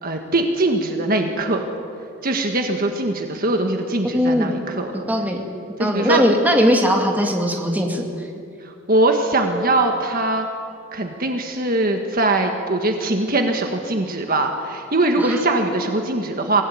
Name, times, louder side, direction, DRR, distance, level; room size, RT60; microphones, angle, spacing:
voice 1, 0.0-1.6 2.2-5.0 5.8-6.2 8.6-10.5 10.9-16.6, right 2 dB, 40° right, 4 dB, 1.6 m, -21 dB
voice 2, 4.0-4.5 5.1-5.4 5.8-8.0 15.2-15.4, equal, 5° right, 1 dB, 2.2 m, -19 dB
24.0 x 16.5 x 9.4 m, 2.5 s
head